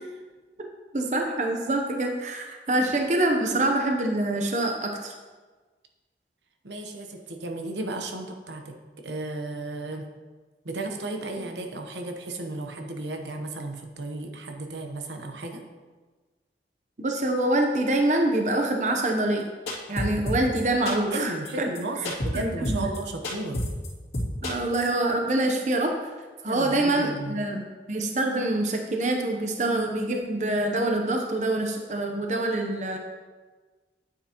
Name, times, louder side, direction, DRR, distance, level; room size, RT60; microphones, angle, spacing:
voice 1, 0.9-5.1 17.0-19.4 19.9-21.7 22.3-22.9 24.4-25.9 26.4-33.0, right 1 dB, 40° right, 2 dB, 0.8 m, -25 dB
voice 2, 6.6-8.7 9.0-10.1 10.6-15.6 21.1-23.6 26.4-27.5, right 2 dB, 80° right, 3 dB, 1.0 m, -34 dB
sound 1, 19.7-20.6 20.9-21.2 21.4-21.5 21.7-21.8 22.0-22.4 22.6-23.0 23.2-23.9 24.1-24.9, left 1 dB, 65° left, 2.8 m, -28 dB
9.9 x 8.8 x 3.0 m, 1.3 s
head